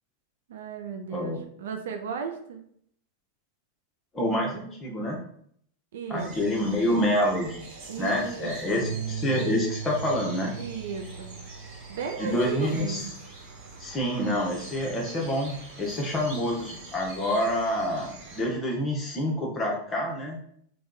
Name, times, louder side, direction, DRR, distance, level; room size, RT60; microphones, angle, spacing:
voice 1, 0.5-2.6 5.9-6.3 7.9-8.9 10.6-11.4 11.9-13.2, right 6 dB, 60° right, 4 dB, 0.4 m, -35 dB
voice 2, 4.1-5.2 6.1-7.7 8.0-10.5 12.2-13.0 13.8-20.4, equal, 20° left, -2 dB, 1.0 m, -27 dB
sound 1, 6.2-18.5, right 2 dB, 45° right, 1.2 m, -45 dB
sound 2, 8.8-15.1, right 6 dB, 80° left, 0.3 m, -39 dB
3.4 x 2.3 x 3.8 m, 0.65 s
figure-of-eight pair, 90°, 0 cm